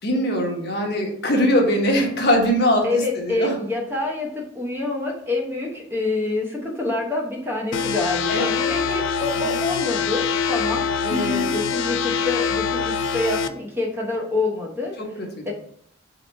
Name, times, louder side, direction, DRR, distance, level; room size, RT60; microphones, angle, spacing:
voice 1, 0.0-3.5 8.3-8.7 9.3-9.6 11.1-11.5 15.0-15.5, equal, 50° left, 1 dB, 1.0 m, -22 dB
voice 2, 2.8-14.9 15.5-15.6, left 2 dB, 10° right, -1 dB, 0.7 m, -27 dB
sound 1, 7.7-13.5, left 6 dB, 70° left, 0.3 m, -24 dB
4.0 x 2.9 x 4.3 m, 0.66 s
head